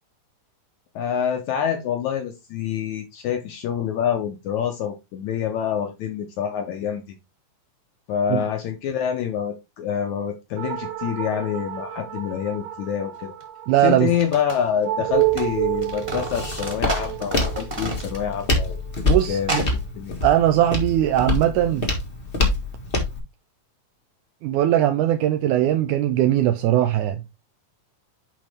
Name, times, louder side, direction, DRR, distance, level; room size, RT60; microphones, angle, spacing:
voice 1, 1.0-7.2 8.1-13.3 13.8-18.8 19.3-20.2, left 8 dB, 75° left, 1.8 m, -26 dB
sound 1, 10.6-19.4, right 16 dB, 60° right, 2.3 m, -30 dB
sound 2, 13.4-13.5 14.0-15.5 15.7-18.5 18.7-18.8 19.4-19.7, right 1 dB, 20° right, 1.3 m, -31 dB
voice 2, 13.7-14.1 19.0-19.6 20.2-21.9 24.4-27.2, right 12 dB, 80° right, 1.8 m, -20 dB
Walk footsteps, 15.1-23.2, left 2 dB, 55° left, 0.6 m, -26 dB
10.0 x 3.7 x 3.4 m
omnidirectional pair, 4.1 m